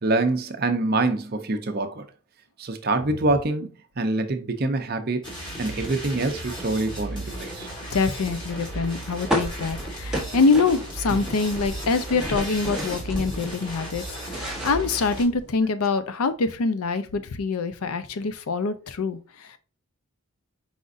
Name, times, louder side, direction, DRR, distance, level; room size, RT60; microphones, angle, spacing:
voice 1, 0.0-2.1 2.6-3.7 4.0-5.3 5.6-7.7 11.1-11.3, right 2 dB, 45° right, 0.6 m, -25 dB
sound 1, 5.2-15.2, right 1 dB, 20° left, 1.4 m, -35 dB
voice 2, 7.9-14.0 14.3-19.5, left 4 dB, 85° left, 0.5 m, -25 dB
sound 2, 9.3-11.2 11.4-13.6 14.0-15.6, equal, 5° right, 0.9 m, -31 dB
4.9 x 3.9 x 2.5 m
head